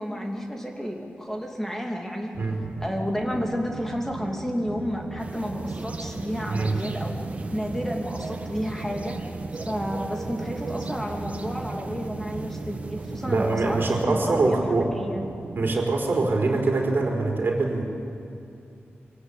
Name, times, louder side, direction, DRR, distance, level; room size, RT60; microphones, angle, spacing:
voice 1, 0.0-2.3 2.8-7.1 7.5-9.2 9.5-15.2, equal, 10° left, 1 dB, 2.8 m, -31 dB
sound 1, 2.3-15.8, right 4 dB, 70° right, 1.2 m, -38 dB
sound 2, 5.2-14.1, right 2 dB, 30° right, 1.5 m, -37 dB
voice 2, 13.3-14.9 15.5-17.8, right 3 dB, 50° right, 0 dB, 4.2 m, -24 dB
25.5 x 18.5 x 8.6 m, 2.5 s
wide cardioid pair, 125°, 4 cm